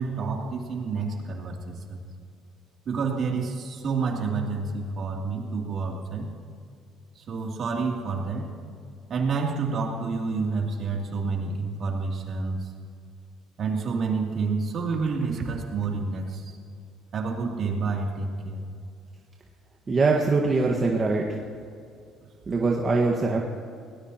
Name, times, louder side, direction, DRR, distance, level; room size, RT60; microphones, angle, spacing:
voice 1, 0.0-2.0 2.9-6.3 7.3-8.5 9.1-12.7 13.6-16.4 17.1-18.7, right 4 dB, 50° right, 0 dB, 2.8 m, -29 dB
voice 2, 19.9-21.4 22.5-23.4, right 3 dB, 30° right, -1 dB, 1.5 m, -23 dB
21.5 x 18.5 x 2.9 m, 2.3 s
cardioid pair, 110°, 0 cm